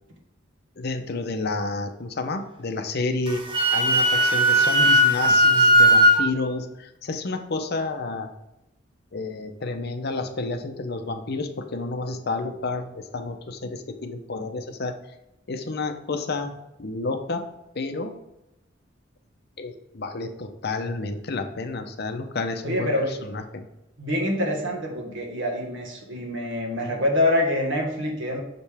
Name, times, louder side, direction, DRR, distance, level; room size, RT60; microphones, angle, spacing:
voice 1, 0.8-3.5 3.7-8.3 9.1-15.0 15.5-16.5 16.8-17.5 17.7-18.1 19.6-23.7, left 3 dB, 55° left, 7 dB, 0.7 m, -30 dB
Wind instrument woodwind instrument, 3.3-6.2, equal, 25° right, 0.9 m, -17 dB
voice 2, 22.6-23.1 24.0-28.4, left 1 dB, 75° right, 1 dB, 1.5 m, -25 dB
6.7 x 5.2 x 3.4 m, 0.91 s
head